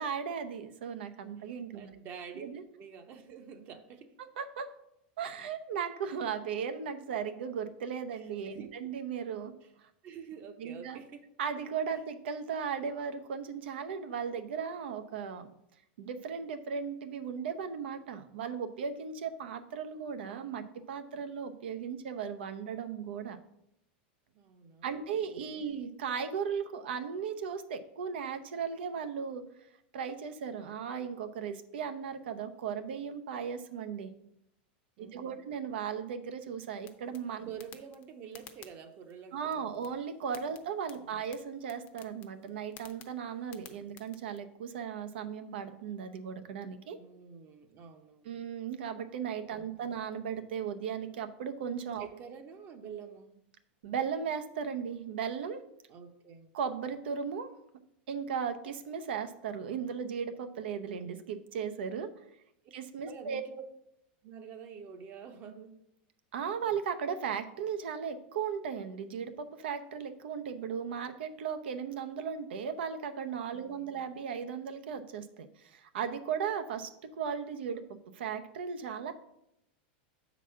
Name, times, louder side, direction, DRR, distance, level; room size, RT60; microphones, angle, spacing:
voice 1, 0.0-1.9 2.4-2.6 4.4-4.7 5.2-9.5 10.6-11.0 11.4-15.5 16.0-23.4 24.8-29.4 29.9-34.1 35.0-37.5 39.3-47.0 48.2-52.1 53.8-55.6 56.5-57.5 58.1-62.1 62.7-63.4 66.3-76.9 77.2-77.8 78.1-79.1, right 7 dB, 85° right, 9 dB, 0.8 m, -36 dB
voice 2, 1.4-4.1 8.1-8.7 9.6-9.7 10.0-11.3 24.3-25.7 35.0-35.4 37.4-39.8 41.0-41.2 47.0-48.4 49.5-50.0 52.0-53.3 55.9-56.5 63.0-63.6 64.2-65.8 73.6-74.0, right 7 dB, 35° right, 7 dB, 0.8 m, -48 dB
sound 1, 36.8-44.4, left 10 dB, 35° left, 0.7 m, -56 dB
7.3 x 4.0 x 5.7 m, 0.80 s
supercardioid pair, 150°, 6 cm